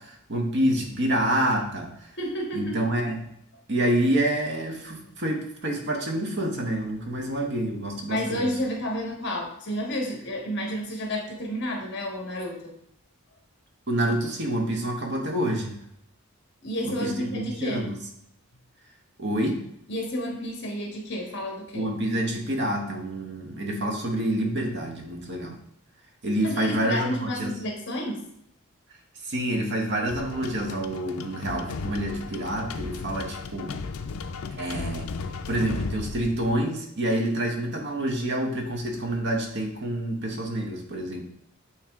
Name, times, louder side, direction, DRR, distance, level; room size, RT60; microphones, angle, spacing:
voice 1, 0.0-2.1 2.5-3.2 3.7-8.5 13.9-15.8 16.8-18.0 19.2-19.6 21.7-25.6 26.2-27.5 29.2-33.7 34.5-35.1 35.5-41.2, right 1 dB, 50° right, 2 dB, 1.1 m, -27 dB
voice 2, 2.2-2.8 8.1-12.7 16.6-17.9 19.9-21.8 26.4-28.2, equal, 50° left, 1 dB, 1.4 m, -30 dB
sound 1, 30.1-36.5, left 4 dB, 70° left, 0.4 m, -35 dB
8.8 x 3.2 x 3.5 m, 0.75 s
head